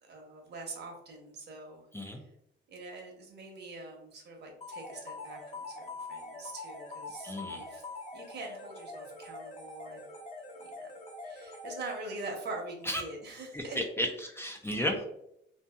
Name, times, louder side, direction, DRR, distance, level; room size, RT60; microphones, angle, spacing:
voice 1, 0.0-1.9 2.1-2.3 2.7-5.8 6.1-7.8 8.1-10.0 10.6-10.9 11.2-13.8, right 2 dB, 60° right, 2 dB, 0.9 m, -44 dB
sound 1, 4.6-12.4, left 2 dB, 35° left, 0.9 m, -44 dB
voice 2, 7.2-7.6 12.8-13.0 13.5-15.0, equal, 10° left, 2 dB, 0.4 m, -33 dB
2.7 x 2.7 x 2.3 m, 0.76 s
cardioid pair, 90°, 20 cm